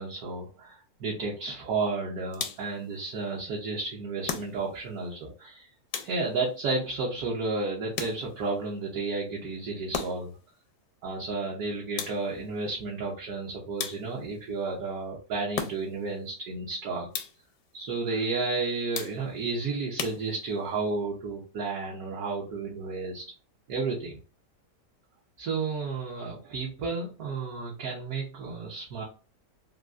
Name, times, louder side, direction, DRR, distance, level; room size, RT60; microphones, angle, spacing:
voice 1, 0.0-5.7 6.0-10.3 11.0-17.1 17.7-23.2 23.7-24.2 25.4-29.0, right 3 dB, 65° right, -2 dB, 1.1 m, -32 dB
sound 1, 2.3-2.8 4.2-4.9 5.9-6.5 7.9-8.5 9.9-10.4 12.0-12.5 13.8-14.4 15.5-16.1 17.1-17.6 18.9-19.5 20.0-20.7, left 7 dB, 75° left, 1.2 m, -37 dB
3.6 x 2.3 x 2.4 m, 0.35 s
omnidirectional pair, 1.8 m